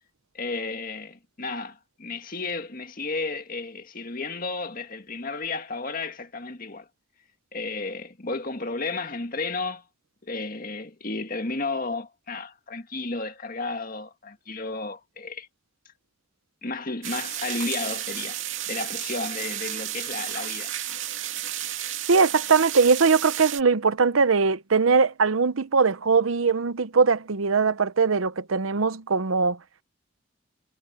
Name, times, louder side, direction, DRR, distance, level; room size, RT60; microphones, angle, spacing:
voice 1, 0.3-6.9 7.5-9.8 10.2-15.5 16.6-18.4 18.7-20.7, left 3 dB, 45° left, 1.9 m, -33 dB
sound 1, 17.0-23.6, right 12 dB, 70° right, 2.5 m, -32 dB
voice 2, 22.1-29.6, right 5 dB, 90° right, 0.8 m, -21 dB
head